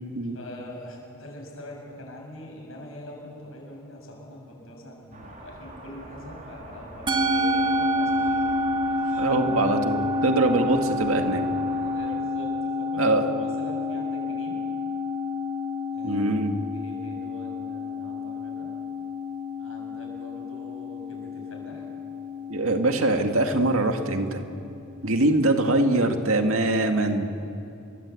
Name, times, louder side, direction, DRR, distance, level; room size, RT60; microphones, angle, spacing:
voice 1, 0.3-8.5 9.2-9.8 11.8-14.6 15.9-16.4 16.7-18.7 19.6-21.9 25.1-25.2 27.4-27.5, left 1 dB, 75° left, 0 dB, 6.9 m, -43 dB
sound 1, 5.1-12.1, right 1 dB, 40° right, 3.4 m, -44 dB
Musical instrument, 7.1-25.6, left 2 dB, 25° right, 1.5 m, -29 dB
voice 2, 9.2-11.4 13.0-13.2 16.0-16.5 22.5-24.4 25.0-27.3, right 2 dB, 80° right, 5 dB, 2.1 m, -23 dB
29.0 x 23.0 x 8.5 m, 2.7 s
head